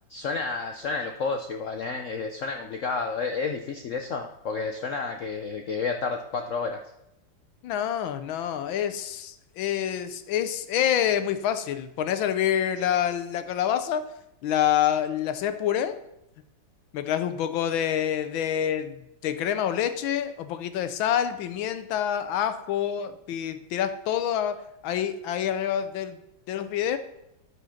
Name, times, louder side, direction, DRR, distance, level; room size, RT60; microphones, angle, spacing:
voice 1, 0.1-6.8, left 4 dB, 70° left, 4 dB, 0.7 m, -30 dB
voice 2, 7.6-14.1 14.4-16.0 16.9-26.2 26.5-27.0, left 10 dB, 85° left, 11 dB, 1.5 m, -27 dB
11.0 x 5.3 x 5.7 m, 0.83 s
omnidirectional pair, 2.1 m